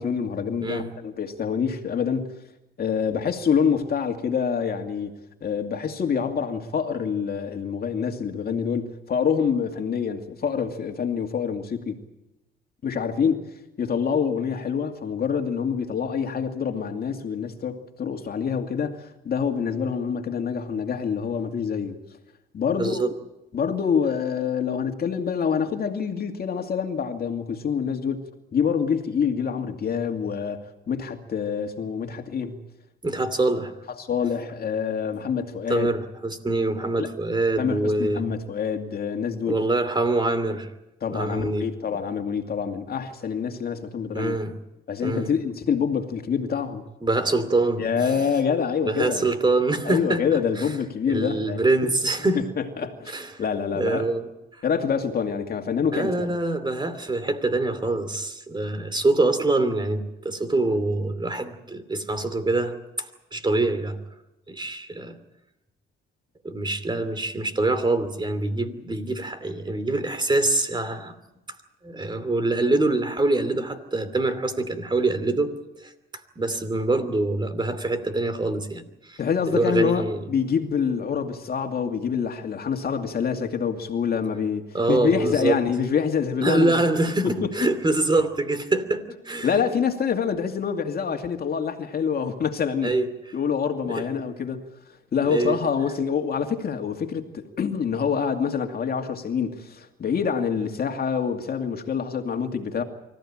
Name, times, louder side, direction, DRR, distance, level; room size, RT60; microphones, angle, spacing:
voice 1, 0.0-2.3 2.8-5.1 5.4-12.0 12.8-22.0 22.5-23.0 23.5-28.3 28.5-30.6 30.9-32.6 34.0-35.9 37.0-37.1 37.6-39.6 41.0-44.4 44.9-46.8 47.8-49.3 49.8-51.6 52.3-53.1 53.4-54.1 54.6-56.3 79.2-86.8 87.4-87.5 89.4-93.0 93.3-94.6 95.1-102.8, left 6 dB, 50° left, 5 dB, 2.4 m, -26 dB
voice 2, 0.6-0.9 22.8-23.1 33.0-33.7 35.7-38.2 39.5-40.7 41.1-41.7 44.1-44.5 45.0-45.3 47.0-48.1 48.8-50.7 51.1-52.5 53.1-53.3 53.7-54.2 54.5-54.6 55.9-64.0 64.5-65.2 66.4-71.1 71.8-75.9 76.4-78.8 79.1-79.2 79.5-80.2 84.7-85.6 86.4-89.6 92.8-93.1 93.9-94.1 95.3-95.6, right 2 dB, 25° right, 10 dB, 2.7 m, -25 dB
25.0 x 15.0 x 8.8 m, 0.94 s
cardioid pair, 90°, 20 cm